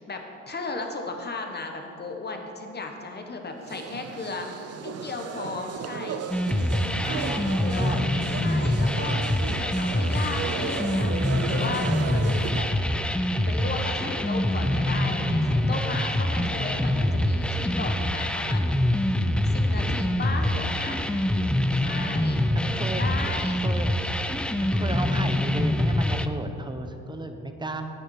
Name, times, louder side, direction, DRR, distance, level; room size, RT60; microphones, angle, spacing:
voice 1, 0.0-4.5 4.8-6.2 7.0-8.0 8.4-11.2 11.5-12.7 13.5-18.7 19.4-21.0 21.8-23.6, left 3 dB, 35° left, 3 dB, 1.2 m, -35 dB
sound 1, 3.6-12.8, right 7 dB, 55° right, 0.6 m, -35 dB
sound 2, 6.3-26.3, left 1 dB, 5° left, 0.4 m, -25 dB
voice 2, 7.0-8.1 22.5-23.1 23.6-23.9 24.6-27.9, right 2 dB, 15° right, 6 dB, 0.9 m, -34 dB
9.2 x 9.0 x 4.7 m, 2.8 s
cardioid pair, 90°, 30 cm